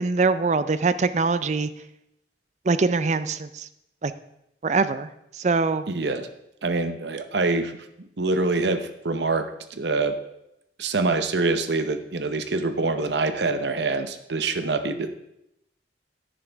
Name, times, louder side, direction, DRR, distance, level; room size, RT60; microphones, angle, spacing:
voice 1, 0.0-1.7 2.7-3.7 4.0-4.1 4.6-5.8, right 4 dB, 40° right, 13 dB, 0.5 m, -23 dB
voice 2, 5.9-6.3 6.6-7.8 8.2-10.2 10.8-15.2, right 3 dB, 80° right, 9 dB, 0.8 m, -25 dB
10.5 x 10.5 x 3.5 m, 0.81 s
head